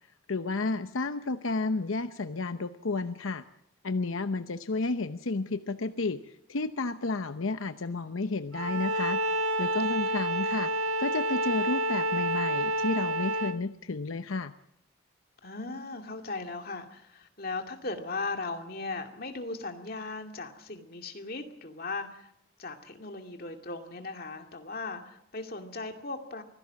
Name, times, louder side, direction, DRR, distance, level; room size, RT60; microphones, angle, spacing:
voice 1, 0.3-3.4 3.8-9.2 9.6-10.7 11.0-14.5, left 3 dB, 80° left, 9 dB, 0.8 m, -32 dB
Bowed string instrument, 8.5-13.6, right 1 dB, 85° right, 1.7 m, -29 dB
voice 2, 15.4-22.3 22.6-26.4, left 3 dB, 45° left, 4 dB, 2.4 m, -38 dB
24.0 x 17.0 x 7.5 m, 0.76 s
head